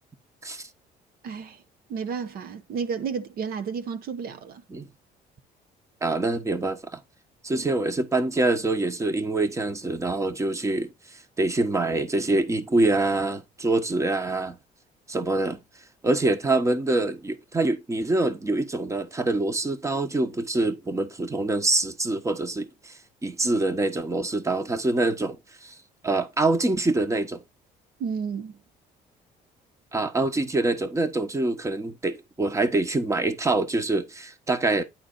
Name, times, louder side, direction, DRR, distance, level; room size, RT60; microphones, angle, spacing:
voice 1, 1.2-1.6 1.9-4.6 7.5-7.7 28.0-28.5, right 6 dB, 60° right, 1.0 m, -32 dB
voice 2, 6.0-7.0 7.4-10.9 11.4-14.6 15.1-15.6 16.0-25.7 26.0-27.4 29.9-34.8, right 2 dB, 15° right, 1.2 m, -25 dB
10.5 x 4.2 x 4.1 m
cardioid pair, 110°, 17 cm